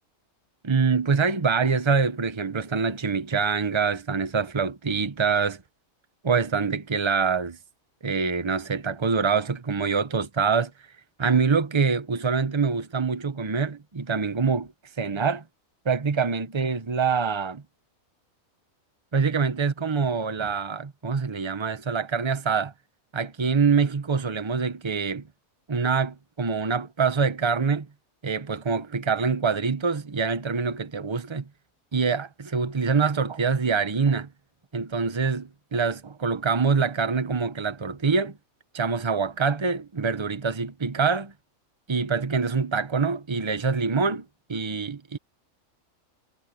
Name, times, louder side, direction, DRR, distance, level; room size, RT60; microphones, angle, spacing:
voice 1, 0.6-5.6 6.2-7.6 8.0-10.7 11.2-14.7 15.0-15.4 15.8-17.6 19.1-22.7 23.1-25.3 25.7-27.9 28.2-31.5 31.9-34.3 34.7-38.4 38.7-41.3 41.9-45.2, right 5 dB, 25° right, 0.9 m, -25 dB
omnidirectional pair, 1.4 m